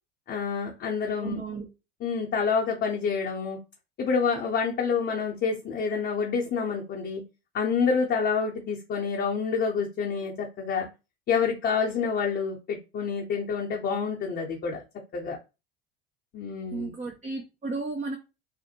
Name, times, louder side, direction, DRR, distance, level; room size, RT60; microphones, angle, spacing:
voice 1, 0.3-1.4 2.0-3.6 4.0-7.2 7.5-10.9 11.3-14.8 15.1-15.4 16.3-16.9, left 5 dB, 35° left, 0.7 m, -28 dB
voice 2, 1.2-1.7 16.7-18.2, right 3 dB, 25° right, 0.5 m, -34 dB
2.5 x 2.1 x 2.8 m
hypercardioid pair, 75°, 31 cm